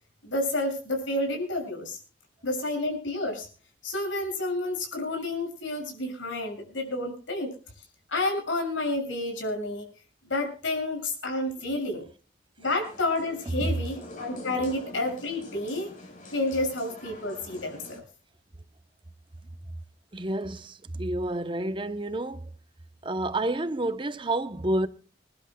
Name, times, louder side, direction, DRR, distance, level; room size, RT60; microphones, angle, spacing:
voice 1, 0.2-2.0 2.4-3.5 3.8-7.5 8.1-9.9 10.3-12.1 12.6-15.9 16.3-18.0, left 2 dB, 90° left, 6.7 m, -30 dB
sound 1, 12.6-18.0, left 1 dB, 45° left, 4.6 m, -45 dB
voice 2, 13.5-13.8 20.1-22.5 23.0-24.9, right 1 dB, 25° right, 0.8 m, -29 dB
27.0 x 11.5 x 2.3 m
head